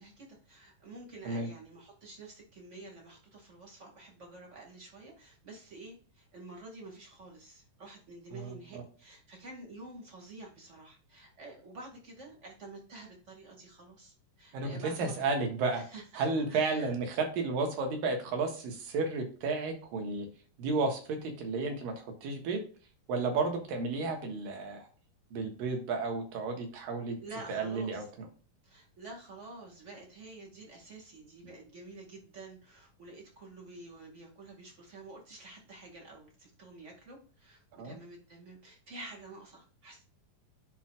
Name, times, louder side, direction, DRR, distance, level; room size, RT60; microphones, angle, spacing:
voice 1, 0.0-15.4 15.7-16.9 27.2-28.1 28.6-40.0, right 2 dB, 25° right, 0 dB, 1.8 m, -49 dB
voice 2, 8.3-8.8 14.5-15.8 16.1-20.3 20.6-22.6 23.1-24.9 25.3-27.2 27.5-28.3 37.8-38.0, right 3 dB, 85° right, 3 dB, 3.2 m, -32 dB
11.0 x 4.5 x 2.4 m, 0.39 s
omnidirectional pair, 3.9 m